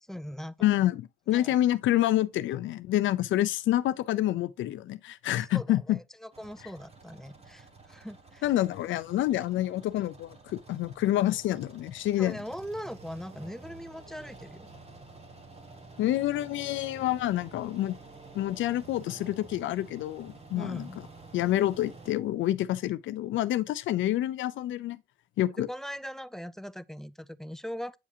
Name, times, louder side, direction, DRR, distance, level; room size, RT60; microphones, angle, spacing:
voice 1, 0.0-0.7 1.3-1.6 5.4-8.4 12.2-14.7 20.5-21.0 25.6-28.0, equal, ahead, 0.3 m, -40 dB
voice 2, 0.6-6.0 8.4-12.4 16.0-17.9 18.3-20.9 21.3-25.0 25.4-25.7, left 14 dB, 75° left, 0.5 m, -28 dB
sound 1, 6.3-22.1, right 3 dB, 30° right, 1.3 m, -50 dB
8.2 x 4.9 x 2.7 m
cardioid pair, 90°, 20 cm